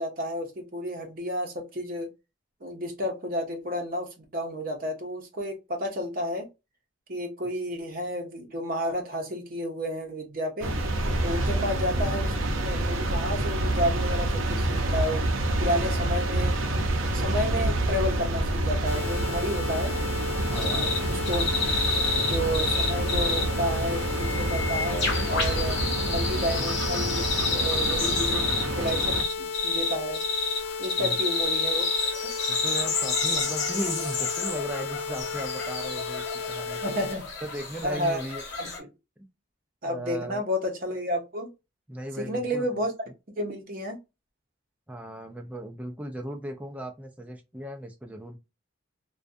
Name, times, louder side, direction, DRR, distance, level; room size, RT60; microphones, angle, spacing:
voice 1, 0.0-2.1 2.6-6.5 7.1-10.7 11.2-12.4 12.6-15.2 15.6-16.6 17.1-19.9 20.5-21.6 22.1-25.8 26.1-28.4 28.8-30.2 30.8-31.9 32.2-32.3 36.8-37.2 37.8-38.2 38.6-38.7 39.8-41.5 42.2-42.9 43.4-44.0, equal, 45° right, 0.7 m, -31 dB
sound 1, 10.6-29.2, right 1 dB, 80° right, 0.5 m, -28 dB
sound 2, 18.9-37.2, left 5 dB, 75° left, 0.4 m, -35 dB
voice 2, 20.4-21.0 26.6-26.7 31.0-31.2 32.5-37.0 37.4-38.4 38.8-38.9 39.9-40.4 41.9-42.7 44.9-48.4, right 1 dB, 5° right, 0.4 m, -37 dB
sound 3, 20.5-38.8, left 3 dB, 55° left, 0.9 m, -30 dB
2.4 x 2.2 x 2.5 m
head